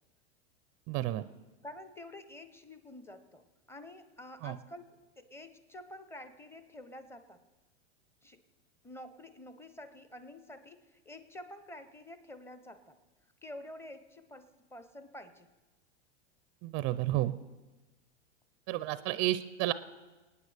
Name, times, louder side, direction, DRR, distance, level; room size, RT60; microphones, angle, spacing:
voice 1, 0.9-1.2 4.4-4.6 16.6-17.3 18.7-19.7, right 16 dB, 35° right, 15 dB, 0.4 m, -31 dB
voice 2, 1.6-4.9 5.2-7.4 8.2-8.4 8.8-13.0 13.4-15.5, left 1 dB, 5° left, 10 dB, 0.7 m, -49 dB
26.0 x 9.4 x 3.4 m, 1.2 s
hypercardioid pair, 120°, 35 cm